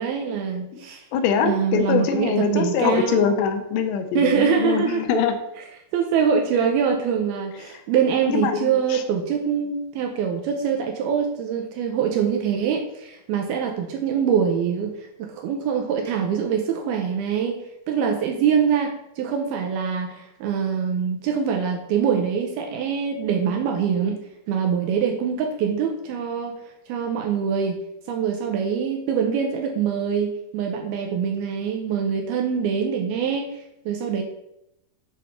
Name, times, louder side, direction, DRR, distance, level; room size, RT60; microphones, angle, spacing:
voice 1, 0.0-1.0 1.4-3.3 4.2-5.0 5.9-24.2 24.5-26.5 26.9-27.8 28.1-34.2, right 7 dB, 80° right, 3 dB, 2.4 m, -24 dB
voice 2, 0.7-5.4 7.6-7.8 8.3-9.0, left 7 dB, 85° left, 6 dB, 3.1 m, -23 dB
8.2 x 4.1 x 5.6 m, 0.83 s
omnidirectional pair, 4.9 m